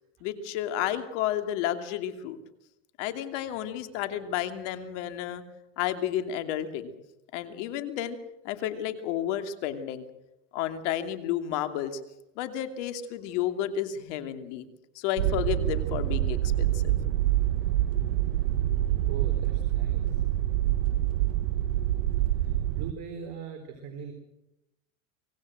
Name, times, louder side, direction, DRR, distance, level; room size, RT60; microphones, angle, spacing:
voice 1, 0.2-2.4 3.0-5.4 5.8-6.9 7.3-8.2 8.4-10.0 10.5-12.0 12.4-14.6 15.0-16.9, left 11 dB, 70° left, 8 dB, 2.7 m, -31 dB
sound 1, 15.2-22.9, right 13 dB, 80° right, 1.2 m, -26 dB
voice 2, 19.0-20.2 22.3-24.1, right 6 dB, 55° right, 5 dB, 3.9 m, -41 dB
25.0 x 18.5 x 7.8 m, 0.92 s
hypercardioid pair, 100°, 37 cm